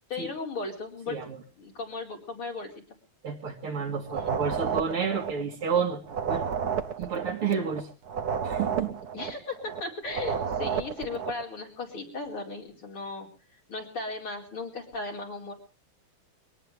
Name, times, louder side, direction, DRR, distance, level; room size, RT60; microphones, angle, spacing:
voice 1, 0.1-1.2 1.6-2.8 4.1-4.4 9.1-13.3 13.7-15.5, left 3 dB, 75° left, -1 dB, 5.5 m, -36 dB
voice 2, 1.1-1.4 3.2-6.4 7.0-7.9 8.4-8.9, right 6 dB, 85° right, 3 dB, 3.5 m, -30 dB
sound 1, 4.1-5.8 6.1-9.8 10.1-11.4, right 7 dB, 50° right, 1.6 m, -31 dB
23.5 x 18.0 x 3.4 m, 0.37 s
omnidirectional pair, 2.3 m